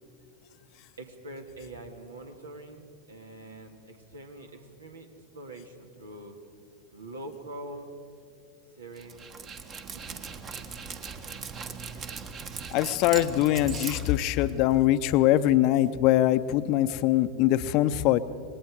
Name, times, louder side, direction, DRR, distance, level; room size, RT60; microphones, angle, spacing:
voice 1, 1.0-5.1 5.3-6.4 6.9-7.9 8.8-9.3 9.9-10.3, right 1 dB, 80° right, 5 dB, 1.9 m, -44 dB
Dog, 9.0-14.8, right 5 dB, 35° right, 1.4 m, -39 dB
voice 2, 12.7-18.2, left 14 dB, 45° left, 14 dB, 0.7 m, -23 dB
27.0 x 20.0 x 4.8 m, 2.5 s
figure-of-eight pair, 90°, 0 cm